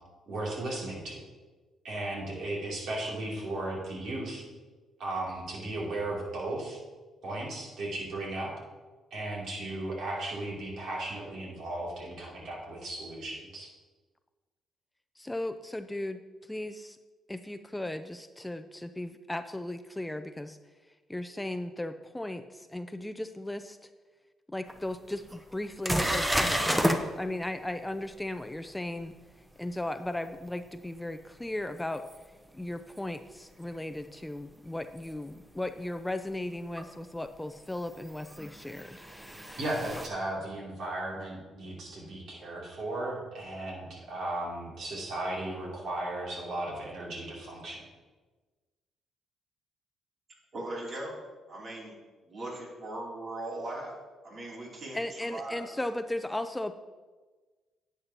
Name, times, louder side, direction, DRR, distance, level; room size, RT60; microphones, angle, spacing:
voice 1, 0.3-1.2 1.8-4.4 5.0-6.8 7.2-8.5 9.1-13.7 39.6-47.8, right 2 dB, 70° right, -3 dB, 2.9 m, -36 dB
voice 2, 15.2-17.0 17.3-20.6 21.1-23.9 24.5-29.1 29.6-32.0 32.5-39.1 54.9-56.7, left 1 dB, 10° left, 9 dB, 0.4 m, -36 dB
sound 1, 24.7-24.8 25.3-25.4 25.8-27.0 32.1-32.2 35.0-35.1 36.8-36.9 38.2-40.1, equal, 10° right, 0.8 m, -29 dB
voice 3, 50.5-51.2 51.5-51.9 52.2-53.9 54.2-55.6, right 1 dB, 50° right, -3 dB, 2.9 m, -39 dB
10.5 x 8.5 x 2.9 m, 1.3 s
cardioid pair, 90°, 0 cm